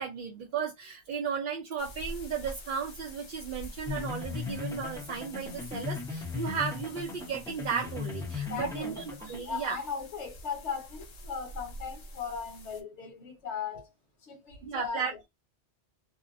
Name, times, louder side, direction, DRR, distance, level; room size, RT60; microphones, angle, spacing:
voice 1, 0.0-9.8 14.6-15.3, right 6 dB, 60° right, 0.6 m, -35 dB
Wind in the bamboo grove, 1.8-12.8, equal, 60° left, 0.8 m, -47 dB
sound 1, 3.9-9.4, left 5 dB, 5° left, 0.6 m, -38 dB
voice 2, 8.5-9.1 9.4-13.9 14.2-15.2, left 6 dB, 85° left, 1.2 m, -38 dB
2.6 x 2.0 x 2.5 m
omnidirectional pair, 1.1 m